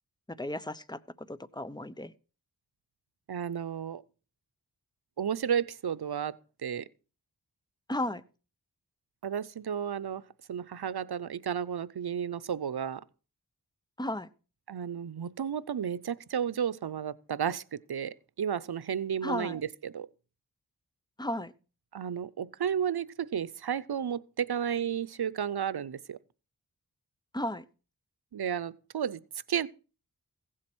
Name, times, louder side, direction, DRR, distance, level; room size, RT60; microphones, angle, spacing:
voice 1, 0.4-2.1 7.9-8.2 14.0-14.3 19.2-19.6 21.2-21.5 27.3-27.6, left 1 dB, 10° left, 0.9 m, -34 dB
voice 2, 3.3-4.0 5.2-6.9 9.2-10.2 10.5-13.0 14.7-20.1 21.9-26.2 28.3-29.2 29.5-29.7, right 8 dB, 90° right, 0.7 m, -33 dB
16.0 x 7.6 x 6.1 m
wide cardioid pair, 50°, 37 cm